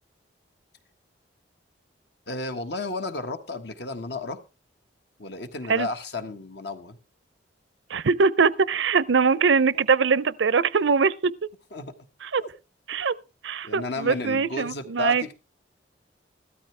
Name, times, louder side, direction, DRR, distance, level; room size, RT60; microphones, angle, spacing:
voice 1, 2.3-4.4 5.2-7.0 11.7-11.9 12.4-12.5 13.6-15.3, left 3 dB, 60° left, 1.5 m, -33 dB
voice 2, 7.9-11.3 12.2-12.4 12.9-13.1 13.4-15.2, right 5 dB, 75° right, 0.6 m, -22 dB
15.0 x 13.0 x 3.3 m
head